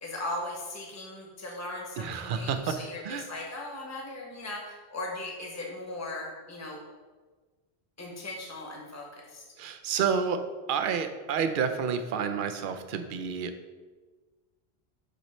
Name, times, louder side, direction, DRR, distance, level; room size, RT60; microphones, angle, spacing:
voice 1, 0.0-6.8 8.0-9.4, left 2 dB, 15° left, -1 dB, 1.0 m, -38 dB
voice 2, 2.0-2.7 3.0-3.3 9.6-10.4 10.7-13.5, right 6 dB, 60° right, 7 dB, 0.7 m, -29 dB
8.0 x 3.1 x 4.3 m, 1.3 s
omnidirectional pair, 1.0 m